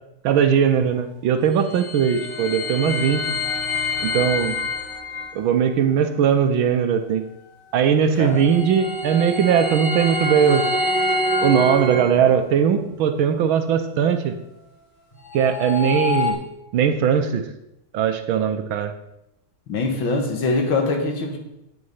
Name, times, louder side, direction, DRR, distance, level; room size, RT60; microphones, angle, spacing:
voice 1, 0.2-3.2 4.0-4.6 5.3-7.2 7.7-10.6 11.4-14.3 15.3-16.4 16.7-17.4 17.9-18.9, right 8 dB, 75° right, 7 dB, 1.5 m, -19 dB
sound 1, 1.3-5.3 8.1-12.6 15.1-16.3, left 2 dB, 25° left, 2.5 m, -26 dB
voice 2, 19.7-21.4, left 3 dB, 65° left, 4 dB, 2.1 m, -23 dB
9.3 x 8.1 x 5.5 m, 0.88 s
omnidirectional pair, 2.3 m